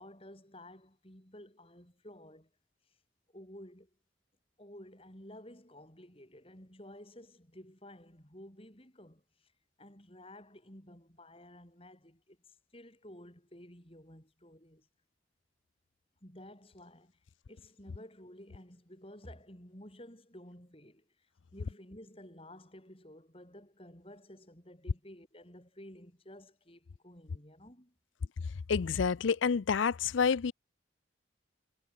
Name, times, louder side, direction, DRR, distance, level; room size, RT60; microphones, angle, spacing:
voice 1, 0.0-2.5 2.9-3.0 3.3-3.9 4.6-9.5 9.8-14.9 16.2-17.1 17.5-27.9, left 1 dB, 30° left, 6.0 m, -53 dB
voice 2, 28.7-30.5, left 6 dB, 75° left, 0.5 m, -28 dB
head